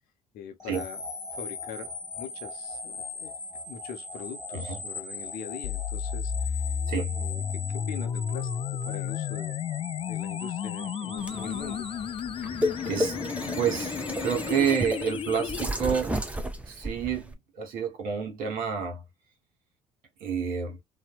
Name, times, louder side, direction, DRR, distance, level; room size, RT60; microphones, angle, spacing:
voice 1, 0.3-1.0 1.3-3.3 3.7-6.8 7.2-9.6 10.1-11.9, left 8 dB, 65° left, 0.7 m, -42 dB
sound 1, 0.6-12.8, left 4 dB, 20° left, 1.2 m, -40 dB
voice 2, 4.5-4.8 6.9-7.1 12.9-13.2 13.4-16.3 16.7-19.0 20.2-20.8, right 7 dB, 60° right, 1.1 m, -29 dB
sound 2, 5.6-15.6, left 7 dB, 35° left, 0.3 m, -33 dB
sound 3, 11.2-17.3, equal, 10° right, 0.7 m, -33 dB
2.6 x 2.0 x 2.3 m
hypercardioid pair, 50°, 16 cm